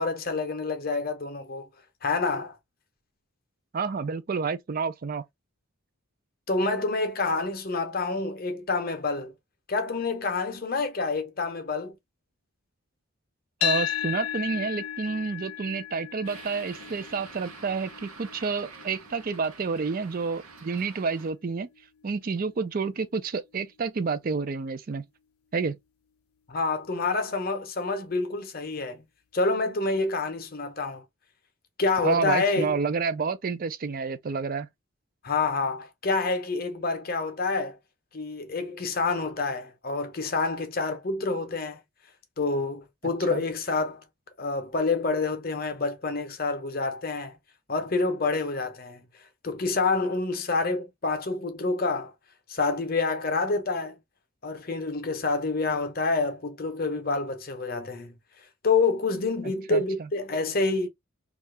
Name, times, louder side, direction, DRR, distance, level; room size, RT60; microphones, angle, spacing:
voice 1, 0.0-1.7 2.0-2.6 6.5-9.3 9.7-12.0 26.5-29.0 29.3-31.0 31.8-32.7 35.2-37.8 38.1-41.8 42.4-44.0 44.4-47.4 47.7-49.0 49.4-52.1 52.5-54.0 54.4-58.1 58.6-60.9, left 3 dB, 40° left, 0.7 m, -27 dB
voice 2, 3.7-5.2 13.6-21.7 22.0-25.0 25.5-25.8 32.0-34.7 43.3-43.4 59.7-60.1, right 5 dB, 40° right, 0.4 m, -29 dB
sound 1, 13.6-21.8, left 11 dB, 80° left, 0.4 m, -35 dB
sound 2, 16.2-21.3, right 4 dB, 80° right, 0.8 m, -47 dB
2.7 x 2.4 x 3.2 m
head